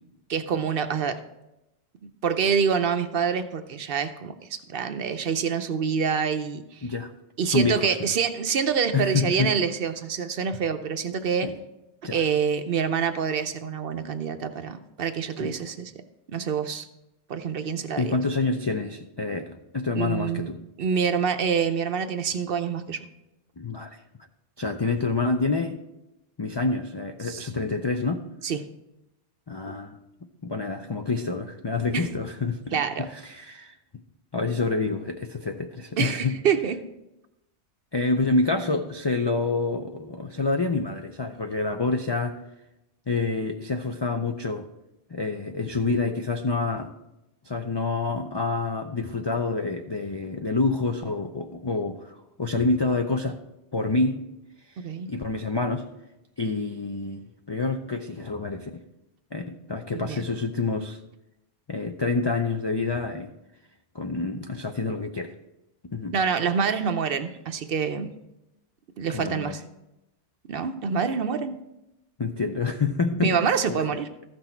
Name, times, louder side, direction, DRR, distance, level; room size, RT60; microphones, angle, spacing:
voice 1, 0.3-1.2 2.2-6.9 7.4-11.5 12.1-15.9 16.3-16.9 17.3-18.1 19.9-20.5 20.8-23.1 27.2-27.5 28.4-28.6 29.7-29.8 31.9-32.1 32.7-33.1 36.0-36.8 54.8-55.1 59.9-60.2 66.1-68.1 69.0-69.6 70.5-71.5 73.2-74.1, right 6 dB, 60° right, 9 dB, 0.8 m, -26 dB
voice 2, 7.5-8.1 8.9-9.5 11.4-11.5 12.0-12.2 15.4-15.5 17.9-20.6 23.6-24.0 24.6-25.8 26.4-28.2 29.5-30.0 30.4-33.7 34.3-36.4 37.9-42.4 43.1-44.7 45.1-46.9 47.5-53.4 53.7-54.2 55.1-55.9 56.4-58.8 59.3-61.0 61.7-63.3 63.9-65.3 65.9-66.2 69.1-69.6 72.2-73.3 73.7-73.8, left 3 dB, 45° left, 5 dB, 0.3 m, -27 dB
14.0 x 6.1 x 4.4 m, 0.92 s
omnidirectional pair, 1.2 m